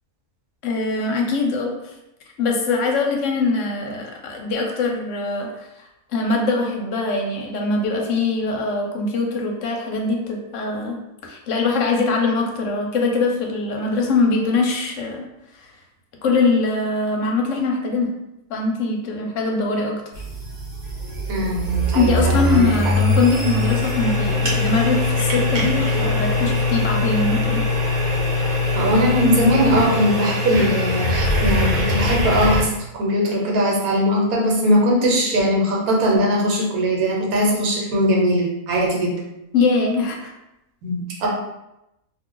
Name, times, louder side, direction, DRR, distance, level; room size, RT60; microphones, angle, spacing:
voice 1, 0.6-1.7 2.4-15.2 15.6-15.7 16.2-18.1 18.5-20.0 21.9-27.7 39.5-40.3, left 3 dB, 65° left, 1 dB, 0.9 m, -22 dB
sound 1, 20.1-32.6, left 2 dB, 50° right, 0.5 m, -21 dB
voice 2, 21.3-22.7 28.7-39.2 40.8-41.3, equal, 75° right, -2 dB, 1.2 m, -20 dB
2.5 x 2.3 x 3.7 m, 0.90 s
omnidirectional pair, 1.6 m